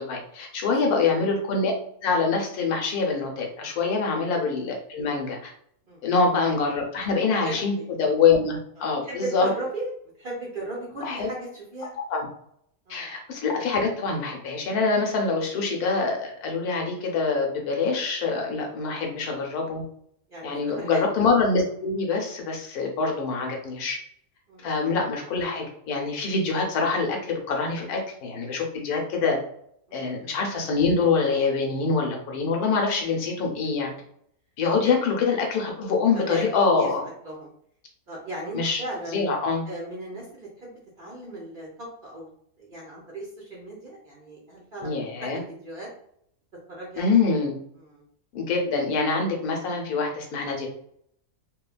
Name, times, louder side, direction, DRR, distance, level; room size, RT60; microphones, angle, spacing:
voice 1, 0.0-1.7 2.0-5.5 6.0-7.7 8.0-9.5 11.0-11.3 12.1-12.3 12.9-19.8 20.4-24.0 24.6-29.4 29.9-33.9 34.6-37.0 38.5-38.8 39.1-39.6 44.8-45.4 47.0-47.5 48.3-50.7, left 4 dB, 85° left, 1 dB, 1.2 m, -25 dB
voice 2, 0.6-1.0 5.9-6.1 7.4-7.8 8.8-9.9 10.2-11.9 12.9-13.1 18.8-19.1 20.3-21.0 24.5-24.7 29.9-30.3 34.8-34.9 36.1-36.5 36.7-36.9 37.2-37.5 38.1-39.3 39.7-42.3 42.6-45.9 46.7-47.2 47.8-48.0, right 1 dB, 50° right, -5 dB, 0.6 m, -37 dB
3.0 x 2.2 x 2.3 m, 0.67 s
omnidirectional pair, 1.6 m